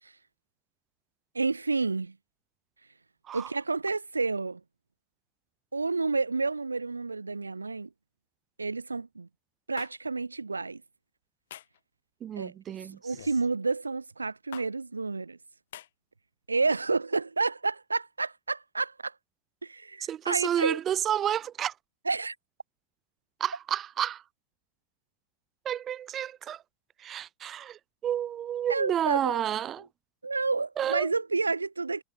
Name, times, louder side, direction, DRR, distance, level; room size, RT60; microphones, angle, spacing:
voice 1, 1.3-2.2 3.3-4.6 5.7-7.9 8.6-9.3 9.7-10.8 12.4-12.5 13.0-15.4 16.5-19.1 19.6-20.8 22.1-22.4 28.7-29.4 30.2-32.0, right 3 dB, 90° right, 7.0 m, -30 dB
sound 1, 9.8-9.9 11.5-11.8 13.1-13.4 14.5-14.7 15.7-15.9, left 12 dB, 70° left, 6.3 m, -44 dB
voice 2, 12.2-13.0 20.1-21.7 23.4-24.2 25.6-26.6 27.0-29.9 30.8-31.1, right 10 dB, 35° right, 1.6 m, -30 dB
figure-of-eight pair, 85°, 0 cm